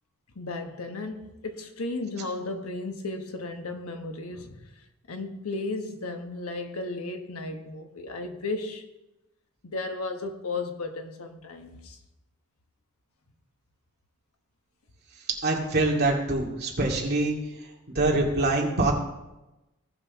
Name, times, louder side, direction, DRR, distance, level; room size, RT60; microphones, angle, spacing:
voice 1, 0.3-8.8 9.6-12.0, left 3 dB, 85° left, 5 dB, 1.2 m, -35 dB
voice 2, 15.4-17.4 17.9-18.9, right 2 dB, 50° right, -2 dB, 2.3 m, -24 dB
17.0 x 6.2 x 3.6 m, 0.99 s
head